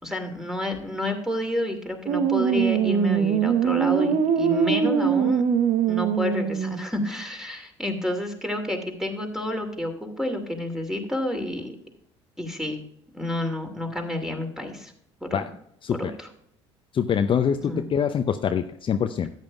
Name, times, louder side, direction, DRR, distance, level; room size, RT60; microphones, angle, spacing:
voice 1, 0.0-5.4 5.9-11.8 12.4-12.8 13.1-14.9 15.2-15.4 15.9-16.3 17.6-17.8, left 1 dB, 5° right, 4 dB, 2.6 m, -30 dB
sound 1, 2.1-6.9, right 7 dB, 50° right, 0.9 m, -22 dB
voice 2, 16.9-19.3, left 7 dB, 35° left, 8 dB, 0.6 m, -24 dB
13.5 x 9.1 x 2.3 m, 0.72 s
hypercardioid pair, 60°, 15 cm